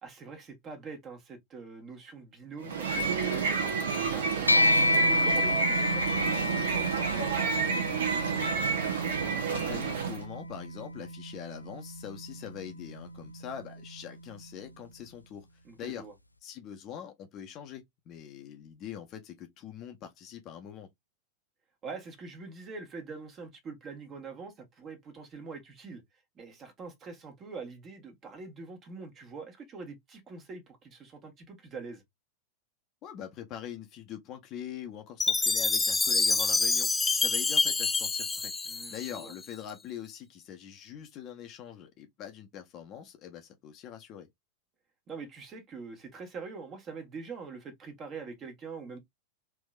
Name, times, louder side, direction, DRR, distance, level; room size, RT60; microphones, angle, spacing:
voice 1, 0.0-4.7 5.1-8.2 15.6-16.1 21.8-26.0 26.3-32.0 38.6-39.3 45.1-49.0, right 4 dB, 30° right, 1.4 m, -44 dB
sound 1, 2.6-10.2, right 6 dB, 65° right, 0.9 m, -30 dB
sound 2, 4.5-14.1, left 1 dB, 85° left, 0.3 m, -30 dB
voice 2, 9.5-15.5 15.8-16.0 16.4-20.9 33.0-38.5 38.9-44.3, left 9 dB, 35° left, 0.8 m, -43 dB
Chime, 35.2-39.5, left 4 dB, 10° left, 0.3 m, -27 dB
3.5 x 3.1 x 2.3 m
figure-of-eight pair, 90°, 0 cm